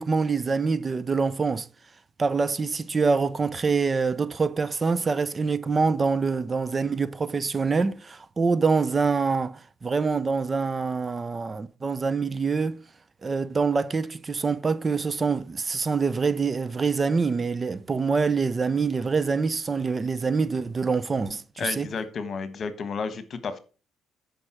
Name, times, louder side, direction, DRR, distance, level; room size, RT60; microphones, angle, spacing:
voice 1, 0.0-1.7 2.2-12.8 13.2-21.9, right 4 dB, 35° right, 0.6 m, -25 dB
voice 2, 21.6-23.6, left 5 dB, 50° left, 1.4 m, -32 dB
9.6 x 5.1 x 6.1 m
cardioid pair, 90°, 0 cm